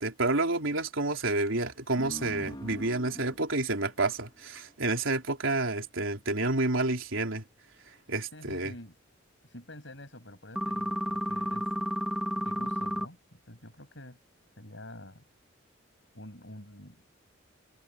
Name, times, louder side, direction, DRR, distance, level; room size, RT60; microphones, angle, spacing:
voice 1, 0.0-7.4 8.1-8.7, right 2 dB, 75° right, 3.5 m, -29 dB
sound 1, 2.0-5.1, equal, 25° left, 2.5 m, -44 dB
voice 2, 8.3-9.0 9.5-11.9 12.3-14.2 14.6-15.2 16.1-17.0, left 1 dB, 65° left, 7.8 m, -47 dB
sound 2, 10.6-13.1, equal, 5° right, 3.3 m, -31 dB
open air
head